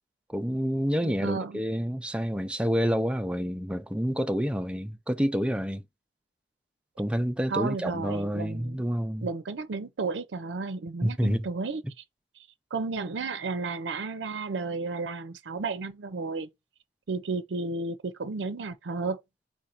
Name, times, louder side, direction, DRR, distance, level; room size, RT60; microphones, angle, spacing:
voice 1, 0.3-5.8 7.0-9.3 11.0-11.5, equal, 5° right, 0.4 m, -28 dB
voice 2, 1.0-1.6 7.5-8.8 9.2-12.0 12.7-16.5 17.1-19.2, right 3 dB, 80° right, 0.5 m, -33 dB
4.6 x 2.6 x 4.2 m
head